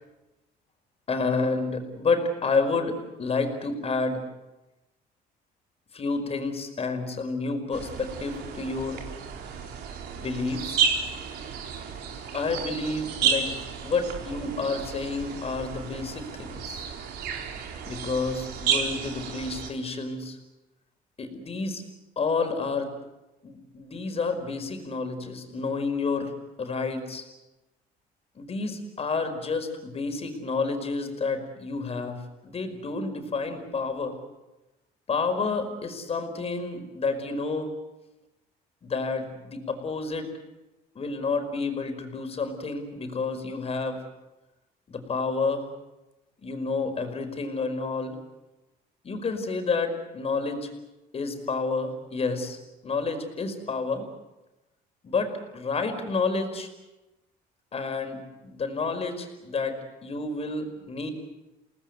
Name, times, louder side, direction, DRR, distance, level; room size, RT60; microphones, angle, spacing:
voice 1, 1.1-4.2 5.9-9.1 10.2-10.8 12.3-13.5 13.8-16.8 17.9-20.4 21.2-21.8 22.2-22.9 23.4-26.3 26.6-27.2 28.4-34.2 35.1-37.7 38.8-40.3 41.0-44.0 44.9-45.7 46.4-48.2 49.0-50.7 51.1-52.6 52.8-54.0 55.0-56.7 57.7-61.1, left 4 dB, 35° left, 6 dB, 5.1 m, -29 dB
sound 1, 7.7-19.7, right 6 dB, 75° right, 4.5 m, -32 dB
29.5 x 19.0 x 8.2 m, 1.0 s
cardioid pair, 110°, 17 cm